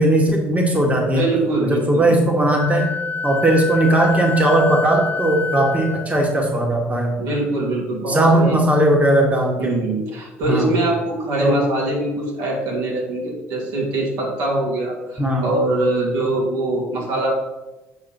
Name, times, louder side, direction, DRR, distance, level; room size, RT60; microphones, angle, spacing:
voice 1, 0.0-1.2 1.6-2.9 3.2-7.1 8.1-9.7 10.4-10.7 11.4-11.6 15.2-15.5, right 1 dB, 20° right, 1 dB, 1.8 m, -18 dB
voice 2, 1.0-2.1 7.2-8.6 9.6-17.3, right 2 dB, 70° right, -3 dB, 2.6 m, -23 dB
Wind instrument woodwind instrument, 2.6-6.1, left 5 dB, 25° left, 0.5 m, -27 dB
7.8 x 5.8 x 4.3 m, 1.1 s
hypercardioid pair, 55°, 7 cm